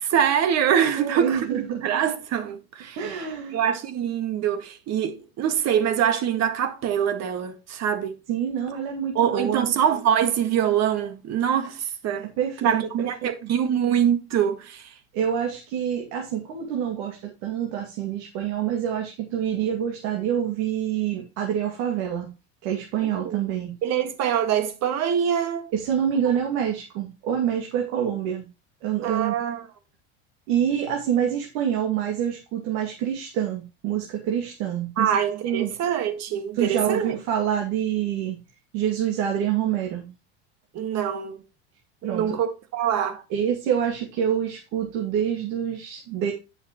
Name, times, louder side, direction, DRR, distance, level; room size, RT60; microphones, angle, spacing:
voice 1, 0.0-3.0 3.5-8.2 9.2-12.3 12.6-14.9 23.0-23.4 23.8-25.7 29.0-29.7 35.0-37.2 40.7-41.4 42.0-43.2, right 9 dB, 50° right, 1.8 m, -24 dB
voice 2, 1.0-1.8 3.0-3.5 8.3-9.7 12.4-12.8 13.2-13.5 15.1-22.3 22.6-23.7 25.7-28.5 28.8-29.3 30.5-35.1 35.4-35.7 36.5-38.4 38.7-40.1 42.0-42.4 43.3-46.3, right 9 dB, 70° right, 2.3 m, -26 dB
10.5 x 6.5 x 3.0 m
supercardioid pair, 105°, 33 cm